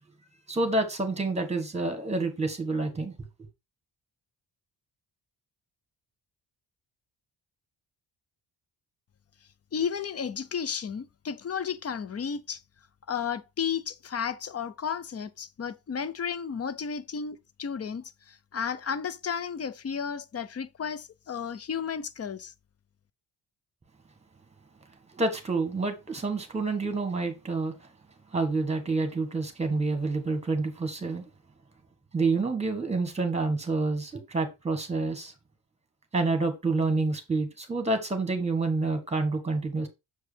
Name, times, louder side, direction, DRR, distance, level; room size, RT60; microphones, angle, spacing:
voice 1, 0.5-3.1 25.1-27.7 28.3-31.2 32.1-35.3 36.1-39.9, right 3 dB, 15° right, 1.5 m, -28 dB
voice 2, 9.7-12.6 13.1-22.5, left 7 dB, 35° left, 0.5 m, -33 dB
7.0 x 4.7 x 3.3 m
wide cardioid pair, 135°, 45 cm